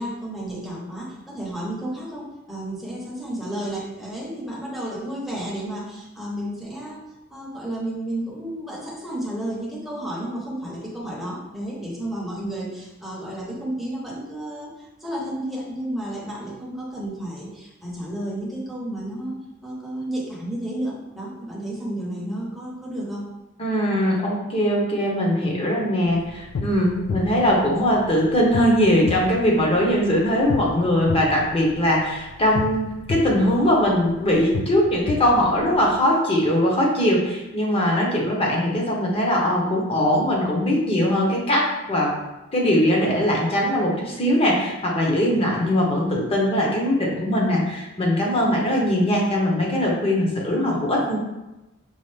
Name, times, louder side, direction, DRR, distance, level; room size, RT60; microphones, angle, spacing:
voice 1, 0.0-7.0 7.3-19.4 19.6-23.2 48.4-48.5, right 1 dB, ahead, -5 dB, 0.9 m, -32 dB
voice 2, 23.6-42.1 42.5-51.2, equal, 30° left, -2 dB, 0.9 m, -21 dB
sound 1, 26.0-36.0, left 4 dB, 90° left, 0.4 m, -33 dB
5.4 x 2.5 x 3.3 m, 0.99 s
head